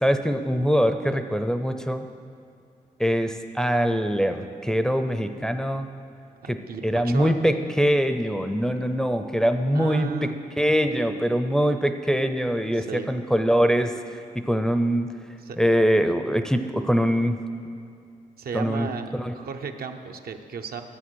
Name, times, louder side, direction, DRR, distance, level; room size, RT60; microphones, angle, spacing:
voice 1, 0.0-2.1 3.0-5.9 6.5-10.3 10.6-15.1 15.6-17.4 18.5-18.9 19.1-19.3, equal, 5° left, 8 dB, 0.4 m, -23 dB
voice 2, 6.4-7.3 9.7-10.4 12.8-13.1 15.4-15.6 18.4-20.8, right 6 dB, 75° right, 5 dB, 0.7 m, -35 dB
10.0 x 8.1 x 6.2 m, 2.5 s
wide cardioid pair, 110°, 16 cm